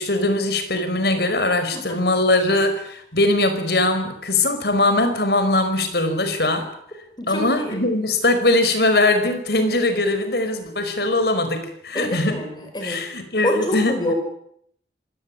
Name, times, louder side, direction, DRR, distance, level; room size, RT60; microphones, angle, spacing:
voice 1, 0.0-6.7 7.3-12.4 12.8-13.9, left 2 dB, 65° left, 9 dB, 5.1 m, -21 dB
voice 2, 1.7-2.0 7.2-7.8 11.9-13.0 13.4-14.1, left 1 dB, 25° left, 5 dB, 5.4 m, -27 dB
26.0 x 17.5 x 10.0 m, 0.71 s
head